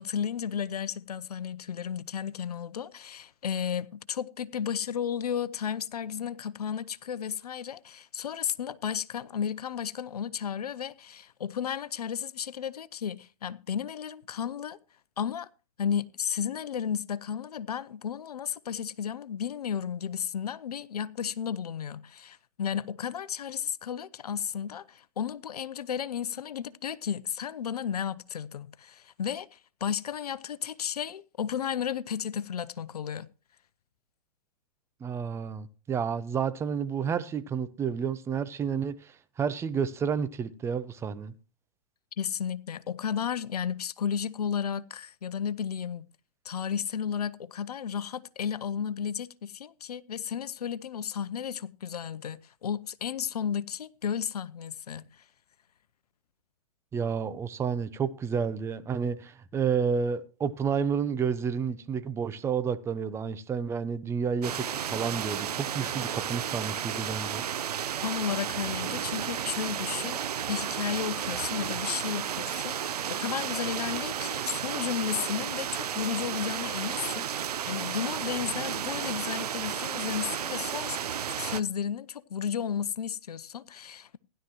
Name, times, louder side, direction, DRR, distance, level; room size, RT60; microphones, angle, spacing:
voice 1, 0.0-14.8 15.2-15.5 15.8-33.3 42.2-46.1 46.4-55.1 68.0-70.2 70.5-81.0 81.4-84.2, left 8 dB, 80° left, 0.7 m, -33 dB
voice 2, 35.0-41.3 56.9-67.4, right 6 dB, 15° right, 0.7 m, -30 dB
sound 1, 64.4-81.6, right 9 dB, 80° right, 0.6 m, -33 dB
16.0 x 11.0 x 3.1 m
hypercardioid pair, 130°, 20 cm